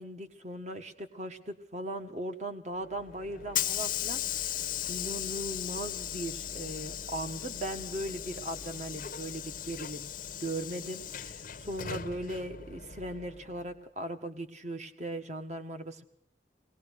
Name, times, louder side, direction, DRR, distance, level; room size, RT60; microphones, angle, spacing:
voice 1, 0.0-4.6 4.9-10.1 10.4-16.0, right 1 dB, 40° right, 8 dB, 1.6 m, -38 dB
Hiss / Sliding door, 2.8-13.7, left 10 dB, 45° left, 0.8 m, -37 dB
22.5 x 19.0 x 6.5 m, 0.65 s
head